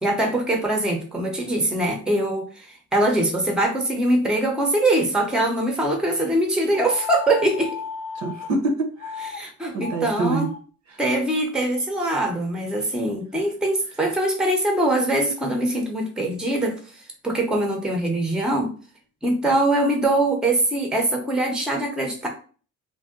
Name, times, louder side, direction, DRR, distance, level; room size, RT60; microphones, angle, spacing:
voice 1, 0.0-7.8 9.3-10.5 11.0-16.8 17.2-18.7 19.2-22.3, right 1 dB, ahead, 2 dB, 0.7 m, -22 dB
sound 1, 6.7-8.5 9.0-9.4 9.7-10.6, left 6 dB, 70° left, 0.5 m, -35 dB
voice 2, 8.2-10.5, right 3 dB, 55° right, 4 dB, 0.8 m, -27 dB
2.6 x 2.1 x 3.6 m, 0.39 s
cardioid pair, 100°, 33 cm